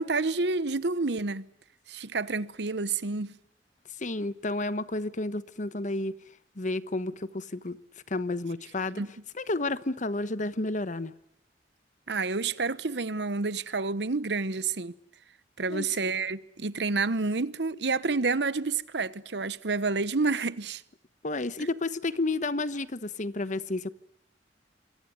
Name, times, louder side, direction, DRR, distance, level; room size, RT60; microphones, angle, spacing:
voice 1, 0.0-1.5 1.9-3.3 9.0-9.1 12.1-14.9 15.6-20.8, right 3 dB, 70° right, 1.0 m, -29 dB
voice 2, 4.0-6.2 6.6-7.8 8.1-9.0 9.3-11.1 15.6-15.9 21.2-23.9, left 2 dB, 45° left, 1.1 m, -31 dB
27.0 x 22.5 x 9.5 m
head